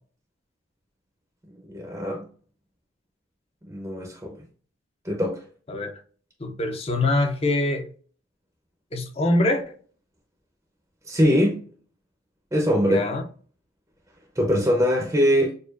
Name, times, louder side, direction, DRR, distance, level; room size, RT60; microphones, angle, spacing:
voice 1, 1.7-2.3 3.7-4.4 5.0-5.4 11.1-11.7 12.5-13.1 14.4-15.6, equal, 15° right, 0.7 m, -22 dB
voice 2, 6.4-7.9 8.9-9.7 12.8-13.2, left 2 dB, 30° left, 0.6 m, -24 dB
6.6 x 2.4 x 2.5 m
head